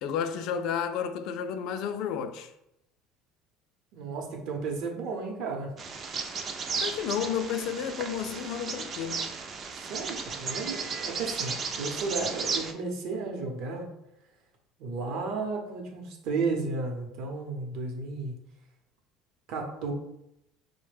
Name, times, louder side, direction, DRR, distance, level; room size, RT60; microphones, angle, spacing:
voice 1, 0.0-2.5 6.8-9.4, left 8 dB, 55° left, 0.3 m, -32 dB
voice 2, 3.9-5.7 9.9-13.9 14.8-18.4 19.5-19.9, right 3 dB, 60° right, 0.7 m, -33 dB
Bird vocalization bird call bird song, 5.8-12.7, right 5 dB, 30° right, 0.3 m, -34 dB
4.1 x 2.1 x 3.2 m
cardioid pair, 155°, 0 cm